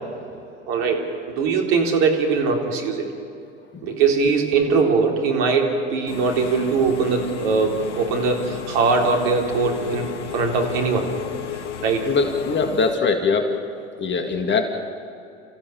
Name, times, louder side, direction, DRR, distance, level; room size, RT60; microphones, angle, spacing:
voice 1, 0.7-3.1 3.8-11.1 11.8-12.1, right 4 dB, 60° right, 1 dB, 3.8 m, -21 dB
Engine / Mechanisms, 6.1-12.9, left 7 dB, 80° left, 1.1 m, -34 dB
voice 2, 12.0-13.6 14.0-14.7, left 4 dB, 30° left, 5 dB, 2.1 m, -22 dB
29.5 x 15.5 x 7.1 m, 2.7 s
figure-of-eight pair, 75°, 35 cm